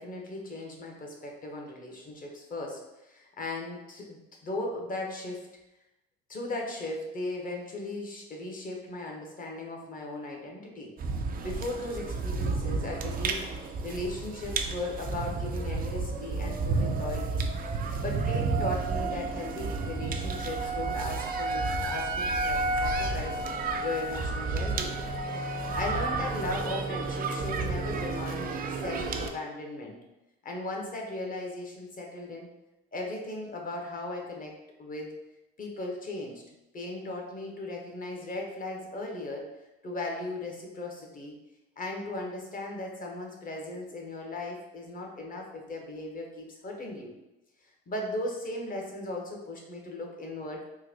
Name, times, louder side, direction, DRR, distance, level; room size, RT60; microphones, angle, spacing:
voice 1, 0.0-5.5 6.3-10.9 11.4-13.5 13.8-17.4 18.0-23.4 23.8-25.0 25.7-28.5 28.8-30.0 30.4-32.5 32.9-34.5 34.8-35.2 35.6-36.4 36.7-39.5 39.8-41.3 41.8-47.1 47.9-50.6, left 2 dB, 30° left, 0 dB, 0.9 m, -37 dB
sound 1, 11.0-29.3, right 3 dB, 30° right, 0.4 m, -31 dB
3.8 x 2.2 x 2.8 m, 0.95 s
supercardioid pair, 85°, 30 cm